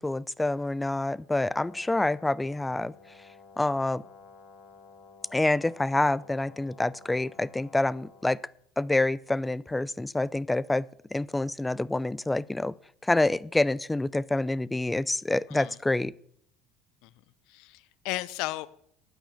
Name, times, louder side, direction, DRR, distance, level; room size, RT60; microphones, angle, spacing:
voice 1, 0.0-2.9 3.6-4.0 5.3-8.4 8.8-10.8 11.1-12.7 13.0-16.1, left 2 dB, 10° left, 21 dB, 0.5 m, -27 dB
Brass instrument, 1.4-8.4, left 5 dB, 50° left, 2.5 m, -53 dB
voice 2, 17.5-18.7, left 18 dB, 70° left, 17 dB, 0.6 m, -35 dB
12.5 x 9.0 x 6.7 m, 0.68 s
hypercardioid pair, 80°, 0 cm